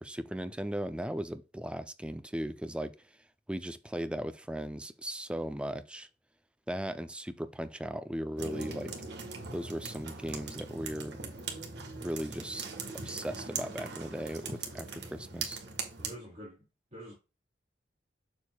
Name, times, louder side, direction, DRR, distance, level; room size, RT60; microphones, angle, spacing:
voice 1, 0.0-2.9 3.5-6.1 6.7-8.9 9.5-11.2 12.0-12.6 13.0-15.6, right 1 dB, 5° right, 0.4 m, -37 dB
sound 1, 8.4-16.2, right 4 dB, 75° right, 1.4 m, -40 dB
voice 2, 16.0-16.6 16.9-17.1, equal, 40° right, 3.3 m, -46 dB
7.0 x 6.4 x 2.3 m
head